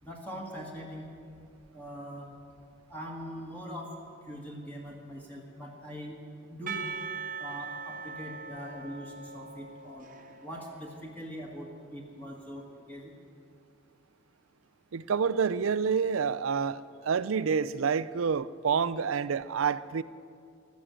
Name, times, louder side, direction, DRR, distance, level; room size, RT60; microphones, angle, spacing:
voice 1, 0.0-1.1 1.7-2.3 2.9-3.9 4.3-6.1 6.5-6.8 7.4-10.1 10.4-13.1, equal, 10° left, 1.7 m, -42 dB
Percussion / Church bell, 6.7-11.7, right 5 dB, 40° right, 0.8 m, -41 dB
voice 2, 14.9-20.0, right 6 dB, 75° right, 0.5 m, -28 dB
15.0 x 12.5 x 7.6 m
head